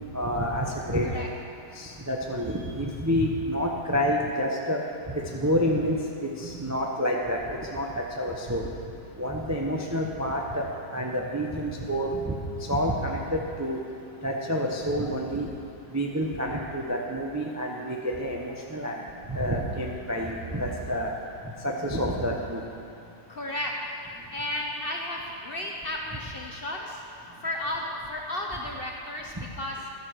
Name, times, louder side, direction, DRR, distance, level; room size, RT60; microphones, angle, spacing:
voice 1, 0.1-1.2 1.8-4.8 5.1-8.7 9.2-10.7 10.9-12.3 12.7-13.8 14.2-15.5 15.9-19.0 19.3-21.1 21.6-22.6, equal, 20° right, -1 dB, 0.5 m, -28 dB
voice 2, 23.3-23.8 24.3-27.0 27.4-29.8, left 1 dB, 45° left, 0 dB, 0.8 m, -33 dB
12.0 x 7.8 x 6.4 m, 2.6 s
omnidirectional pair, 1.8 m